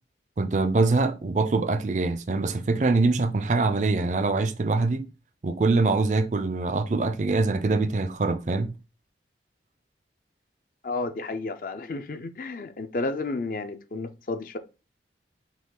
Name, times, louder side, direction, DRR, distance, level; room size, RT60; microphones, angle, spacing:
voice 1, 0.4-5.0 5.4-8.7, right 3 dB, 40° right, 0.4 m, -24 dB
voice 2, 10.8-14.6, left 3 dB, 50° left, 0.4 m, -32 dB
6.1 x 2.3 x 3.7 m
head